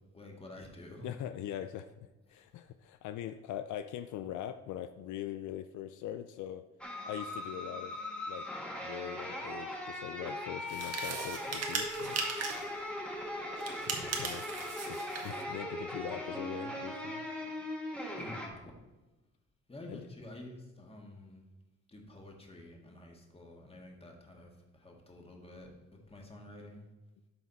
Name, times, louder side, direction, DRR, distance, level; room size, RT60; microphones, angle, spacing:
voice 1, 0.1-1.1 2.3-2.4 18.2-18.7 19.7-21.4 21.9-26.9, left 1 dB, 20° left, 1 dB, 1.8 m, -50 dB
voice 2, 1.0-1.9 2.3-6.6 7.1-8.0 8.3-8.5 8.8-12.2 14.2-14.4 14.8-17.3 19.9-20.1, left 11 dB, 75° left, 9 dB, 0.5 m, -42 dB
sound 1, 6.8-18.5, left 1 dB, 5° left, 1.6 m, -39 dB
sound 2, 10.7-12.7 13.6-15.4, right 4 dB, 55° right, 1.4 m, -38 dB
12.5 x 4.1 x 4.1 m, 1.1 s
cardioid pair, 90°, 30 cm